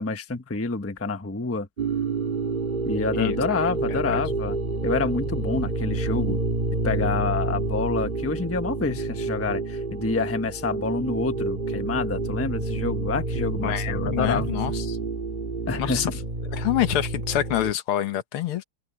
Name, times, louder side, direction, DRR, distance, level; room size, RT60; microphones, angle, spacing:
voice 1, 0.0-1.7 2.8-4.6 4.8-6.4 6.8-14.6 15.7-16.0, left 3 dB, 10° left, 0.7 m, -28 dB
sound 1, 1.8-17.7, right 3 dB, 25° right, 2.2 m, -28 dB
voice 2, 3.2-3.6 3.9-4.2 13.6-15.0 15.8-16.1 16.5-18.6, left 12 dB, 80° left, 1.9 m, -27 dB
open air
omnidirectional pair, 2.4 m